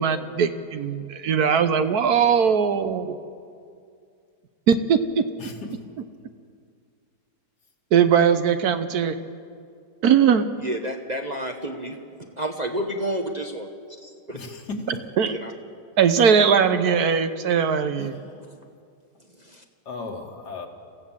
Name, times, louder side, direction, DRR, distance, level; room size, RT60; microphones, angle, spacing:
voice 1, 0.0-3.2 4.7-5.2 7.9-9.2 10.0-10.5 15.2-15.3 16.0-18.1, right 7 dB, 65° right, 10 dB, 1.3 m, -20 dB
voice 2, 5.4-5.8 14.3-15.0 18.0-18.4 19.9-20.7, left 3 dB, 70° left, 3 dB, 2.5 m, -36 dB
voice 3, 10.6-12.0 12.4-13.7 14.0-14.4 15.3-15.5 19.5-19.6, right 1 dB, 30° right, 4 dB, 1.0 m, -30 dB
25.5 x 15.5 x 7.4 m, 2.3 s
omnidirectional pair, 1.8 m